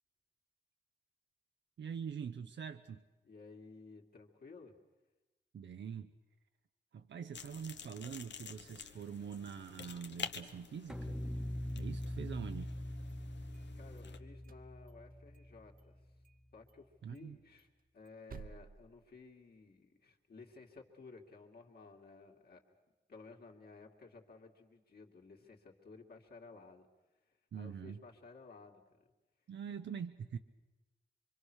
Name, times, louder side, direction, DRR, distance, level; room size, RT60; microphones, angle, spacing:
voice 1, 1.8-3.0 5.5-6.1 6.9-11.2 11.7-12.7 17.0-17.4 27.5-28.0 29.5-30.4, right 7 dB, 85° right, 7 dB, 0.8 m, -44 dB
voice 2, 3.2-4.7 13.7-16.1 16.5-17.7 17.9-22.6 23.1-26.9 27.2-29.1, left 4 dB, 60° left, 0 dB, 2.5 m, -56 dB
sound 1, 7.3-14.2, left 6 dB, 80° left, 1.2 m, -49 dB
sound 2, 10.9-16.1, left 1 dB, ahead, 0.8 m, -43 dB
sound 3, 12.8-14.0 14.4-15.5 15.8-15.9 16.2-16.4 16.7-16.8 17.1-19.7, right 5 dB, 50° right, 0.9 m, -56 dB
25.5 x 24.5 x 6.4 m, 1.1 s
wide cardioid pair, 155°, 18 cm